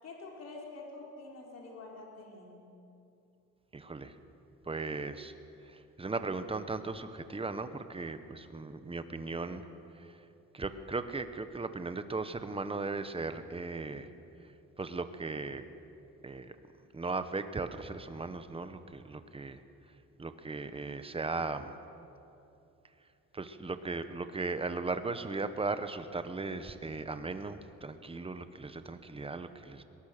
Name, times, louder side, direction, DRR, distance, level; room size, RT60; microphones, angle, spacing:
voice 1, 0.0-2.7, left 3 dB, 60° left, -1 dB, 4.4 m, -47 dB
voice 2, 3.7-4.1 4.7-5.3 5.7-9.6 10.0-10.1 10.5-14.1 14.8-15.7 16.2-16.5 16.9-19.6 20.2-21.8 23.3-29.8, right 3 dB, 20° right, 10 dB, 1.2 m, -37 dB
22.0 x 19.0 x 6.8 m, 2.8 s
cardioid pair, 120°, 30 cm